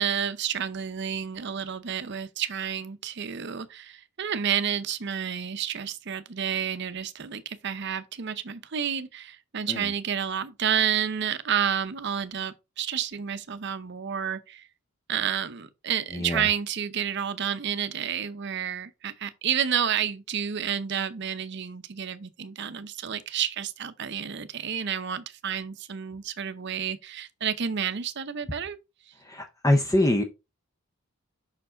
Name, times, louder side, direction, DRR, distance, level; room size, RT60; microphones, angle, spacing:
voice 1, 0.0-14.7 15.1-28.8, right 8 dB, 55° right, 0.6 m, -30 dB
voice 2, 16.1-16.4 29.2-30.2, left 1 dB, 15° left, 0.6 m, -24 dB
5.9 x 4.6 x 3.7 m
head